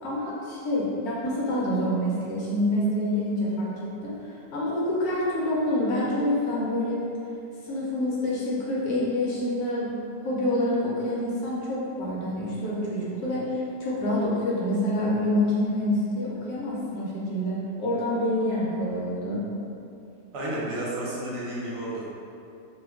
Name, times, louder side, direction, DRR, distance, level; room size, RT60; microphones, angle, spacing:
voice 1, 0.0-7.0 7.6-9.9 10.2-19.4, left 1 dB, 70° left, -6 dB, 1.1 m, -27 dB
voice 2, 20.3-22.1, right 1 dB, 75° right, -7 dB, 1.3 m, -31 dB
2.9 x 2.2 x 3.4 m, 2.7 s
omnidirectional pair, 1.8 m